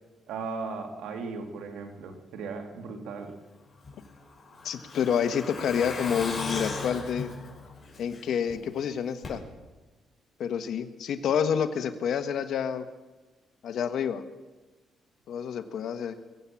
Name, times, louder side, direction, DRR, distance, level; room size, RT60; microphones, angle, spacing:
voice 1, 0.3-3.4, right 4 dB, 80° right, 4 dB, 2.4 m, -37 dB
Truck, 3.8-8.5 8.8-8.9 9.2-9.3, left 3 dB, 40° left, 6.0 m, -37 dB
voice 2, 4.6-7.3 8.0-9.4 10.4-12.8 13.6-14.2 15.3-16.1, left 8 dB, 70° left, 10 dB, 1.3 m, -28 dB
22.0 x 8.4 x 7.5 m, 1.2 s
cardioid pair, 90°, 0 cm